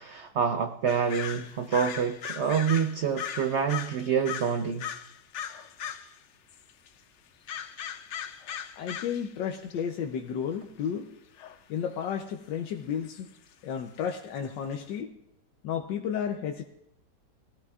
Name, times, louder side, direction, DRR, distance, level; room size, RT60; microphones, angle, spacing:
voice 1, 0.0-4.9, right 7 dB, 75° right, 7 dB, 0.6 m, -27 dB
sound 1, 0.9-6.2 6.5-6.9 7.5-9.3 9.6-9.7 11.4-11.6 12.3-12.4 13.0-13.3 14.1-14.2 14.4-14.5 14.8-14.9, left 8 dB, 70° left, 0.7 m, -38 dB
voice 2, 8.7-11.1 11.7-13.3 13.6-15.1 15.6-16.6, left 8 dB, 85° left, 3 dB, 1.4 m, -32 dB
20.5 x 14.0 x 2.4 m, 0.80 s
omnidirectional pair, 1.9 m